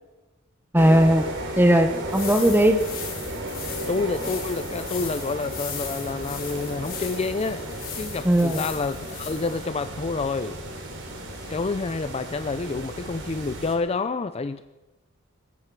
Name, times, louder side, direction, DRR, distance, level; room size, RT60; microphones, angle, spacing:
voice 1, 0.7-1.3 1.6-2.8 8.2-8.6, right 1 dB, 10° right, 7 dB, 0.8 m, -18 dB
sound 1, 0.8-13.7, right 1 dB, 60° right, 3.4 m, -35 dB
sound 2, 1.9-9.7, left 7 dB, 45° left, 3.8 m, -38 dB
voice 2, 3.9-7.7 7.9-10.6 11.5-14.6, left 3 dB, 30° left, 11 dB, 0.4 m, -28 dB
19.0 x 14.5 x 4.7 m, 1.1 s
head